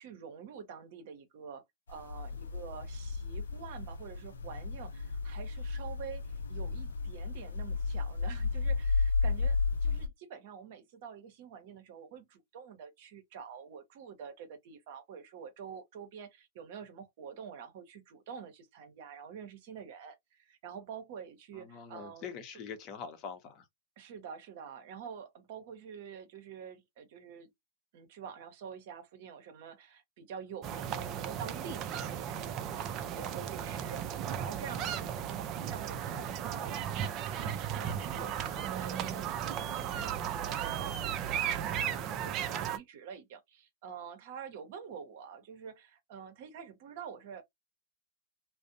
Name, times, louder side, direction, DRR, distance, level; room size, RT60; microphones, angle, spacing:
voice 1, 0.0-22.3 24.0-27.5 27.9-47.4, right 7 dB, 55° right, 0.8 m, -47 dB
sound 1, 1.9-10.1, left 4 dB, 80° left, 0.5 m, -33 dB
voice 2, 21.5-23.6, left 6 dB, 40° left, 0.7 m, -44 dB
sound 2, 30.6-42.8, right 9 dB, 35° right, 0.4 m, -35 dB
2.5 x 2.0 x 2.6 m
hypercardioid pair, 110°, 0 cm